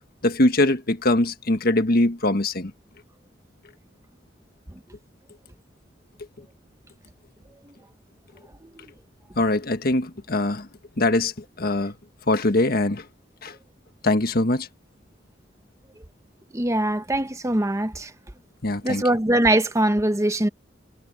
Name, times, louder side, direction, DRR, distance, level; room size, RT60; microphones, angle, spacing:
voice 1, 0.2-2.7 9.4-10.7 11.0-11.3 11.6-11.9 12.3-13.0 13.4-13.5 14.0-14.7 18.6-19.0, left 2 dB, 55° left, 1.5 m, -22 dB
voice 2, 16.5-18.1 18.8-20.5, right 1 dB, 15° right, 1.0 m, -22 dB
head